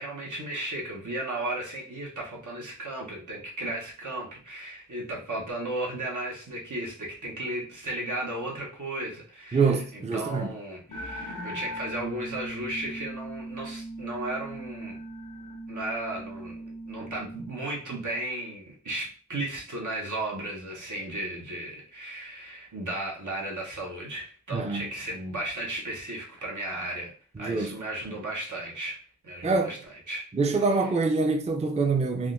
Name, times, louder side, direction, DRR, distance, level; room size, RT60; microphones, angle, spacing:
voice 1, 0.0-15.0 15.7-29.0 29.2-29.8 30.1-30.2 30.5-30.9, right 1 dB, 80° right, 0.9 m, -35 dB
voice 2, 9.5-10.5 24.5-24.9 27.4-27.8 29.4-29.7 30.3-32.3, right 4 dB, 25° right, 0.4 m, -25 dB
sound 1, 10.9-17.5, right 1 dB, 85° left, 0.5 m, -39 dB
3.5 x 2.2 x 2.5 m
wide cardioid pair, 40°, 30 cm